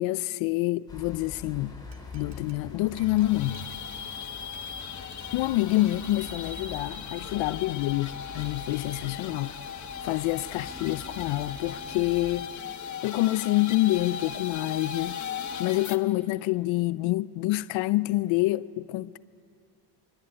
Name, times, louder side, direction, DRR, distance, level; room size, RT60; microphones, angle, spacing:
voice 1, 0.0-1.8 2.1-3.6 5.3-9.6 10.0-12.5 13.0-15.2 15.6-19.2, left 18 dB, 80° left, 0.6 m, -27 dB
sound 1, 0.9-12.4, left 3 dB, 10° left, 5.3 m, -45 dB
Glass, 1.3-1.4 1.9-4.2 4.5-4.7 5.1-5.3 5.7-5.9 6.3-6.5 6.9-7.1 7.4-7.7, right 9 dB, 70° right, 2.7 m, -57 dB
sound 2, 3.0-16.0, left 7 dB, 40° left, 1.3 m, -38 dB
28.0 x 23.5 x 8.7 m
cardioid pair, 115°, 45 cm